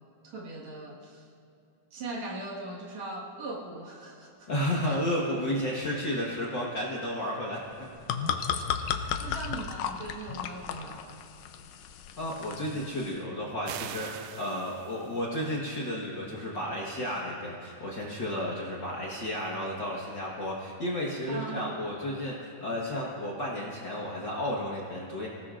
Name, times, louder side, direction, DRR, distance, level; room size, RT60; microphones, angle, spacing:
voice 1, 0.2-1.3 1.9-4.5 4.8-5.0 9.2-11.2 21.3-21.8, right 2 dB, 65° right, -2 dB, 2.9 m, -40 dB
voice 2, 4.5-7.7 12.2-25.3, equal, 45° left, -4 dB, 1.7 m, -32 dB
sound 1, 7.7-13.2, left 8 dB, 90° left, 2.2 m, -34 dB
sound 2, 13.7-15.3, right 11 dB, 85° right, 2.0 m, -42 dB
25.5 x 17.5 x 2.5 m, 2.8 s
omnidirectional pair, 3.4 m